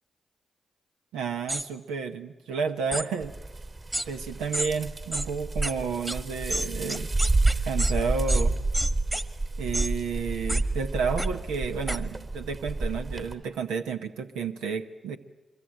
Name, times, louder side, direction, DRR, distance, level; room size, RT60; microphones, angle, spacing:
voice 1, 1.1-3.3 4.0-7.1 7.7-8.5 9.6-15.2, right 5 dB, 90° right, 6 dB, 0.8 m, -31 dB
sound 1, 1.5-1.6 2.9-3.1 3.9-4.1 4.5-4.7 5.1-5.3 5.6-5.7 6.1-6.2 6.5-7.9 8.3-8.4 8.7-9.2 9.7-9.9 10.5-10.6 11.2-11.3 11.9-12.0, right 1 dB, 15° right, 1.6 m, -30 dB
sound 2, 3.2-13.3, right 2 dB, 45° right, 3.0 m, -29 dB
24.0 x 22.0 x 8.8 m, 1.2 s
supercardioid pair, 45°, 0 cm